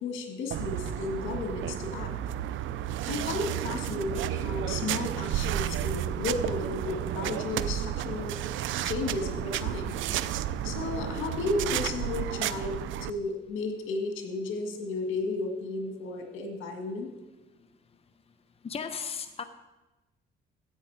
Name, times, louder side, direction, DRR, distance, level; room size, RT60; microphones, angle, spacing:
voice 1, 0.0-2.1 3.1-8.4 8.8-10.0 10.6-17.1, left 3 dB, 85° left, 5 dB, 1.8 m, -33 dB
sound 1, 0.5-13.1, right 11 dB, 80° right, 0.5 m, -32 dB
voice 2, 18.6-19.4, left 6 dB, 30° left, 9 dB, 0.8 m, -35 dB
13.0 x 8.5 x 4.8 m, 1.1 s
cardioid pair, 90°, 20 cm